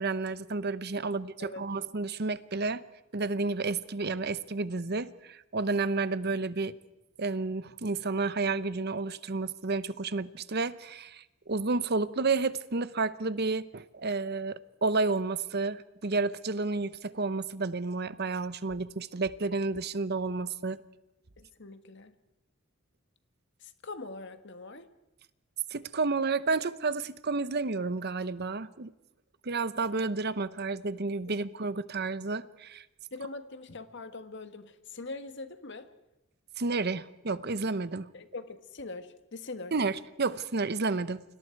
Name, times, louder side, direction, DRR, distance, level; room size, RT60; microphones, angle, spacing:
voice 1, 0.0-2.8 3.1-6.8 7.2-20.8 25.7-28.9 29.4-32.8 36.6-38.1 39.7-41.2, right 3 dB, 55° right, 15 dB, 0.9 m, -31 dB
voice 2, 21.4-22.1 23.6-24.9 31.3-31.4 33.1-35.9 38.1-39.7, left 3 dB, 60° left, 9 dB, 1.6 m, -42 dB
29.5 x 25.0 x 4.7 m, 0.95 s
head